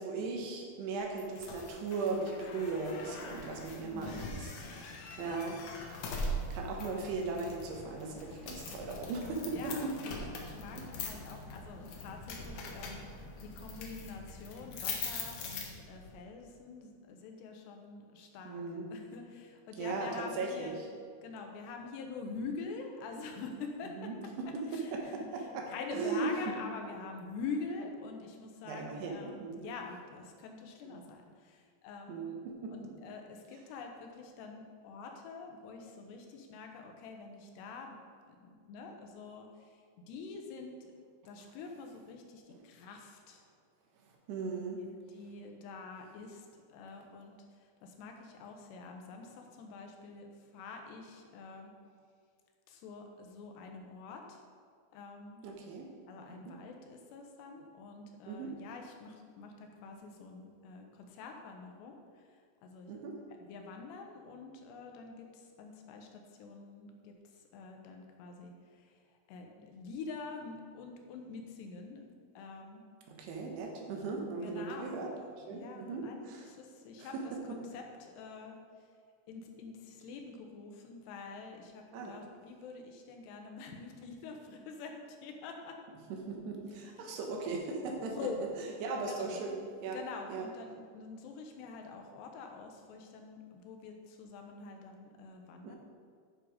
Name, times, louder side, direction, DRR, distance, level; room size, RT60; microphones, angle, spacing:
voice 1, 0.0-4.1 4.4-6.0 6.5-9.9 10.8-10.9 18.4-18.9 19.8-20.8 24.0-25.6 25.9-26.3 28.6-29.7 30.8-30.9 32.1-32.4 32.6-32.9 44.3-44.8 55.4-55.9 56.5-56.6 58.3-58.5 62.9-63.1 73.1-75.1 75.5-76.4 77.0-77.6 81.9-82.2 86.1-88.1 88.8-89.6 89.8-90.0 90.3-90.5 95.6-95.8, right 3 dB, 80° right, 1 dB, 3.3 m, -38 dB
sound 1, 1.2-16.1, left 2 dB, 70° left, 1.9 m, -42 dB
voice 2, 3.8-4.3 5.2-5.4 9.5-18.6 18.9-20.8 21.2-24.1 24.7-32.3 32.7-38.0 38.2-40.7 41.2-43.5 45.1-51.7 52.7-54.4 54.9-55.4 56.1-63.0 63.5-72.1 72.3-72.8 74.4-75.1 75.5-78.9 79.3-85.8 87.0-87.1 88.0-88.4 89.1-89.4 89.9-95.8, left 4 dB, 90° left, 3 dB, 3.1 m, -46 dB
9.4 x 6.4 x 5.0 m, 2.1 s
omnidirectional pair, 4.7 m